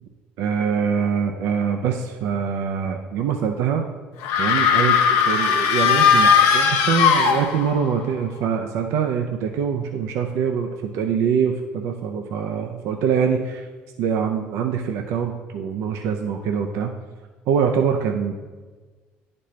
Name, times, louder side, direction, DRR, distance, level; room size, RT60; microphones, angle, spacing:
voice 1, 0.4-3.9 4.4-13.7 14.0-16.9 17.5-18.3, right 7 dB, 70° right, 3 dB, 0.5 m, -24 dB
sound 1, 4.2-7.9, left 6 dB, 75° left, 0.7 m, -18 dB
10.0 x 4.2 x 3.1 m, 1.4 s
supercardioid pair, 75°, 5 cm